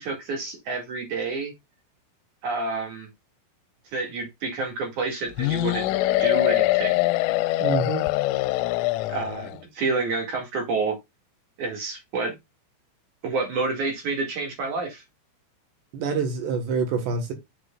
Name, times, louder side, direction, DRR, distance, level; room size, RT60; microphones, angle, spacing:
voice 1, 0.0-1.5 2.4-3.1 3.9-5.9 6.2-6.9 9.1-11.0 11.6-12.3 13.2-15.0, right 3 dB, 50° right, 2.7 m, -29 dB
sound 1, 5.4-9.6, left 17 dB, 85° left, 3.0 m, -23 dB
voice 2, 7.6-8.1 15.9-17.3, right 5 dB, 70° right, 3.2 m, -26 dB
8.0 x 6.1 x 2.4 m
omnidirectional pair, 5.7 m